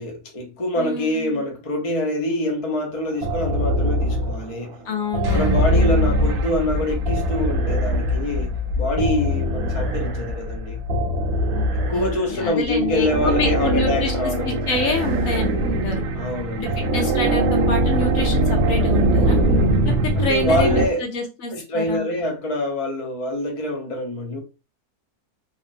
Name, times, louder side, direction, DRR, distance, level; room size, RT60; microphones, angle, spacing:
voice 1, 0.0-4.8 5.3-10.8 11.7-14.6 16.1-17.1 20.2-21.0 21.5-24.4, left 1 dB, 50° left, 0.4 m, -25 dB
voice 2, 0.8-1.4 4.8-6.4 11.5-11.7 11.9-14.1 14.4-16.0 16.6-19.4 19.8-22.1, left 2 dB, 65° left, 1.1 m, -27 dB
sound 1, 3.2-4.6 5.1-8.4 9.0-10.4 10.9-12.3 12.8-20.9, right 1 dB, 70° right, 0.9 m, -22 dB
sound 2, 5.2-17.0, left 2 dB, 35° right, 0.7 m, -29 dB
2.9 x 2.0 x 2.5 m
omnidirectional pair, 1.6 m